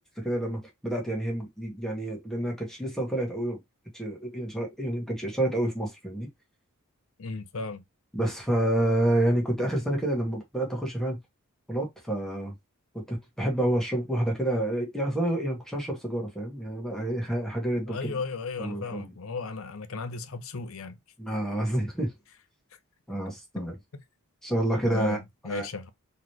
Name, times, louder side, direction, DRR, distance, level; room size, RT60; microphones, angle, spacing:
voice 1, 0.2-3.6 3.9-6.3 8.1-11.2 11.7-12.5 12.9-18.2 18.6-19.1 21.2-22.1 23.1-23.7 24.4-25.2 25.5-25.7, right 1 dB, ahead, 1.4 m, -28 dB
voice 2, 7.2-7.8 17.9-21.0 24.8-25.2 25.4-25.9, left 4 dB, 65° left, 0.7 m, -35 dB
4.0 x 3.2 x 3.0 m
head